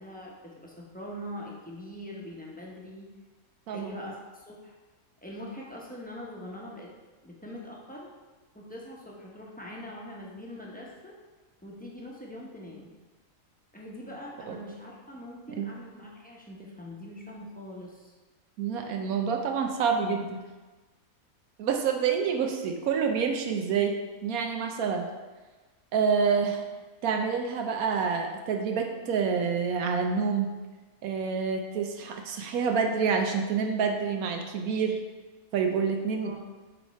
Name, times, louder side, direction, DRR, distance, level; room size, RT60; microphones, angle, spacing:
voice 1, 0.0-3.1 3.7-4.8 5.2-6.9 7.2-8.1 8.5-11.1 11.6-12.9 13.7-18.1 36.2-36.4, left 1 dB, 10° left, -4 dB, 0.7 m, -43 dB
voice 2, 3.7-4.0 14.5-14.6 15.6-15.7 18.6-20.4 21.6-23.9 24.2-25.1 25.9-26.6 27.0-30.5 31.0-35.0 35.5-36.3, right 6 dB, 90° right, 4 dB, 1.2 m, -27 dB
7.3 x 3.4 x 4.2 m, 1.3 s
omnidirectional pair, 1.5 m